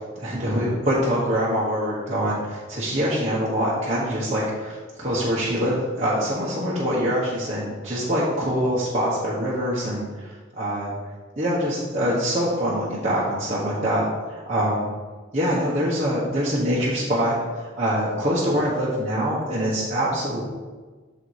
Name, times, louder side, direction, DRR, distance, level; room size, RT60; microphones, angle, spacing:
voice 1, 0.1-10.9 11.4-14.9 15.3-20.4, equal, 35° right, -8 dB, 1.2 m, -24 dB
7.0 x 4.8 x 4.8 m, 1.3 s
head